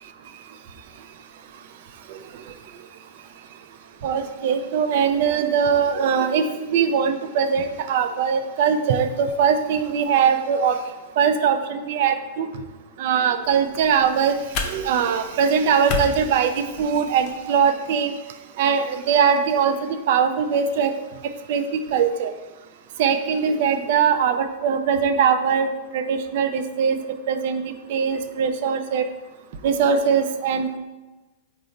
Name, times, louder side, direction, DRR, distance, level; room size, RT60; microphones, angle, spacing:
voice 1, 4.0-10.8 11.2-12.5 13.0-14.4 14.6-18.1 18.6-20.9 21.5-22.3 23.0-27.0 27.3-27.6 27.9-29.1 29.6-30.8, right 7 dB, 60° right, 8 dB, 0.3 m, -21 dB
sound 1, 13.4-17.4, left 3 dB, 45° left, 0.5 m, -33 dB
3.7 x 2.0 x 4.0 m, 1.2 s
hypercardioid pair, 110°, 0 cm